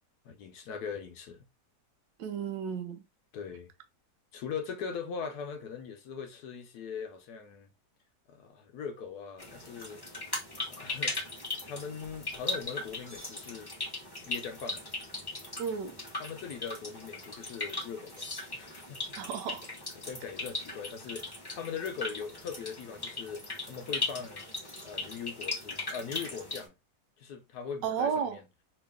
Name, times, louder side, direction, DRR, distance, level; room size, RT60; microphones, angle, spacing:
voice 1, 0.2-1.5 3.3-3.7 4.3-7.7 8.3-10.0 10.7-11.4 11.6-13.7 14.2-14.9 16.2-19.0 20.0-24.5 24.8-26.7 27.2-28.4, left 6 dB, 70° left, 1.1 m, -40 dB
voice 2, 2.2-3.0 15.6-16.0 19.2-19.7 27.8-28.4, right 7 dB, 85° right, 1.3 m, -33 dB
sound 1, 9.4-26.7, left 2 dB, 30° left, 0.4 m, -38 dB
3.0 x 2.9 x 3.4 m
omnidirectional pair, 1.9 m